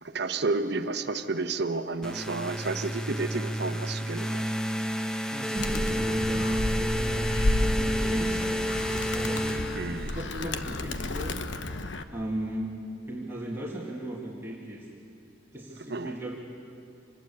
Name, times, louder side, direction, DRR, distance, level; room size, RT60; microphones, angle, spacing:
voice 1, 0.0-4.5 9.7-10.4 15.9-16.1, right 3 dB, 60° right, 9 dB, 1.1 m, -31 dB
sound 1, 2.0-10.3, equal, 5° left, 1.0 m, -30 dB
voice 2, 5.3-8.7 9.1-9.7 10.1-11.4 12.1-12.8 13.0-14.9 15.5-16.4, right 1 dB, 15° right, -3 dB, 2.2 m, -36 dB
Animal, 5.6-12.0, left 1 dB, 75° left, 1.1 m, -31 dB
26.0 x 20.5 x 8.6 m, 2.7 s
head